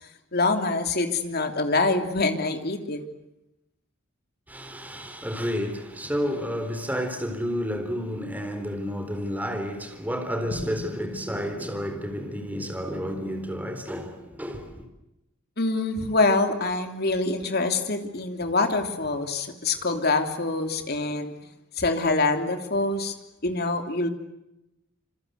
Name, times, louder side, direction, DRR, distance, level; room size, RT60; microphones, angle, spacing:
voice 1, 0.3-3.0 10.5-10.6 15.6-21.3 21.8-23.1 23.4-24.1, left 3 dB, 50° left, 3.2 m, -25 dB
voice 2, 4.5-14.8, equal, 10° right, 3.9 m, -31 dB
27.5 x 26.5 x 8.1 m
head